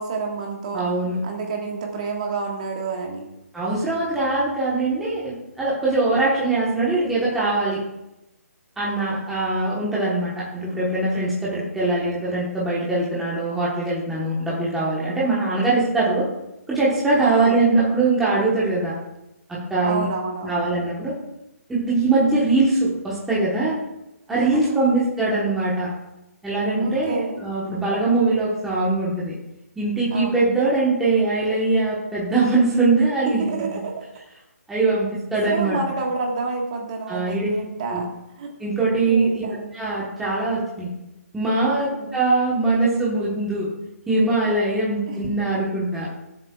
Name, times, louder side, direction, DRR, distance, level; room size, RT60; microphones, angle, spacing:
voice 1, 0.0-0.8 1.2-3.3 17.2-17.7 19.8-20.6 24.3-24.8 26.8-27.5 30.1-30.4 33.2-34.0 35.5-38.1 38.4-38.5 39.1-39.8 41.9-42.1 45.1-45.2, right 3 dB, 25° right, 1 dB, 1.5 m, -29 dB
voice 2, 0.7-1.2 3.5-7.8 8.8-16.3 16.7-18.9 19.5-20.0 20.4-21.1 21.7-23.8 24.3-25.9 26.4-29.4 29.8-33.5 34.7-35.8 37.1-37.5 37.9-38.0 38.6-40.9 41.3-43.7 44.1-46.1, right 3 dB, 5° right, -8 dB, 1.2 m, -22 dB
18.0 x 7.5 x 2.4 m, 0.90 s
hypercardioid pair, 170°, 9 cm